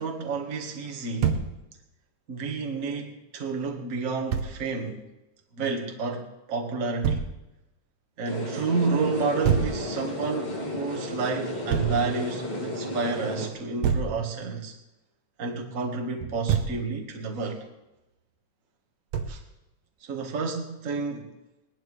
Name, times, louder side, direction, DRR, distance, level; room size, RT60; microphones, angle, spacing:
voice 1, 0.0-1.4 2.3-5.0 5.5-7.3 8.2-14.7 15.4-17.6 19.3-19.4 20.0-21.3, right 4 dB, 35° right, 1 dB, 1.5 m, -30 dB
Thump thud, 1.2-1.5 4.3-4.5 7.0-7.3 9.4-9.8 11.7-12.0 13.8-14.2 16.2-16.8 19.1-19.4, right 7 dB, 65° right, 1.7 m, -25 dB
sound 1, 8.2-13.5, left 1 dB, 15° left, 2.4 m, -33 dB
20.5 x 11.5 x 3.4 m, 0.97 s
omnidirectional pair, 3.6 m